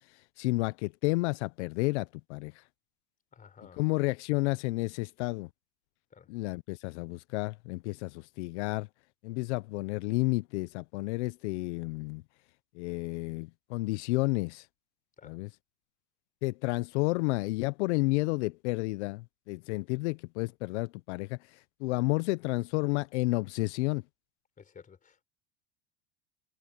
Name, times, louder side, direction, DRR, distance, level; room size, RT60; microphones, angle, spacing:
voice 1, 0.1-2.6 3.8-5.5 6.3-8.9 9.2-12.2 12.7-14.7 15.2-15.5 16.4-24.0, left 24 dB, 75° left, 0.6 m, -31 dB
voice 2, 3.3-3.8 6.1-6.3 15.2-15.3 24.6-25.3, left 6 dB, 25° left, 4.4 m, -53 dB
supercardioid pair, 130°, 35 cm